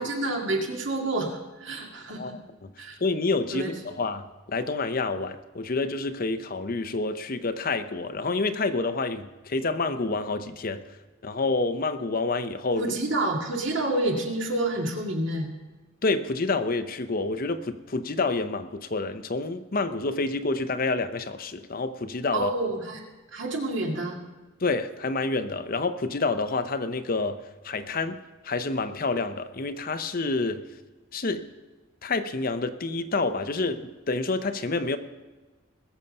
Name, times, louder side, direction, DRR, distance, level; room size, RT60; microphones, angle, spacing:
voice 1, 0.0-2.4 2.8-3.0 3.5-3.7 12.8-15.5 22.3-23.0 23.3-24.2, right 2 dB, 60° right, 1 dB, 2.2 m, -28 dB
voice 2, 2.2-2.7 3.0-10.8 11.2-12.9 16.0-22.5 24.6-28.2 28.4-30.6 31.1-31.5 32.0-35.0, left 3 dB, 45° left, 10 dB, 0.7 m, -28 dB
20.5 x 7.3 x 5.4 m, 1.2 s
head